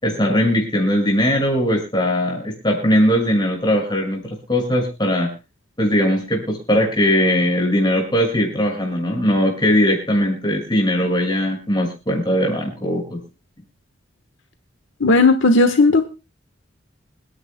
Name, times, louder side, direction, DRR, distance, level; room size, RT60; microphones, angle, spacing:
voice 1, 0.0-5.3 5.8-13.2, equal, 25° left, 0 dB, 6.2 m, -19 dB
voice 2, 15.0-16.1, left 3 dB, 70° left, 8 dB, 1.2 m, -14 dB
28.0 x 10.5 x 2.2 m, 0.30 s
head